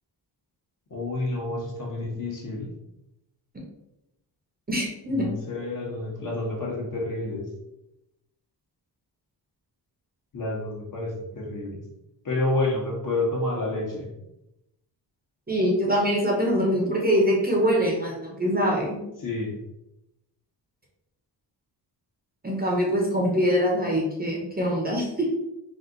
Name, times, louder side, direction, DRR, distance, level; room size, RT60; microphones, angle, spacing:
voice 1, 0.9-2.7 5.1-7.5 10.3-11.8 12.2-14.1 19.2-19.6, left 2 dB, 50° left, -2 dB, 1.1 m, -29 dB
voice 2, 4.7-5.3 15.5-19.0 22.4-25.4, equal, 20° right, -2 dB, 0.8 m, -24 dB
4.2 x 2.4 x 3.8 m, 0.89 s
wide cardioid pair, 155°, 42 cm